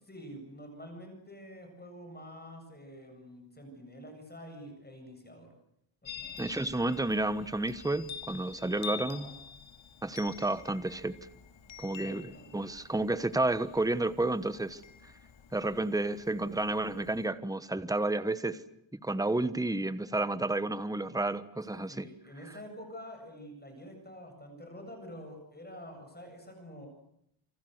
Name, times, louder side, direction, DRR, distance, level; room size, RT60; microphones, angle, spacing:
voice 1, 0.0-5.5 6.0-6.4 9.1-9.4 12.0-12.6 21.9-26.9, equal, 20° left, 4 dB, 7.8 m, -47 dB
Chime, 6.0-17.3, left 7 dB, 70° left, 2.6 m, -48 dB
voice 2, 6.4-9.3 10.0-11.2 11.8-12.2 12.5-14.8 15.5-18.6 19.0-22.1, right 2 dB, 5° right, 13 dB, 1.2 m, -31 dB
28.5 x 24.5 x 8.0 m, 0.75 s
wide cardioid pair, 115°, 48 cm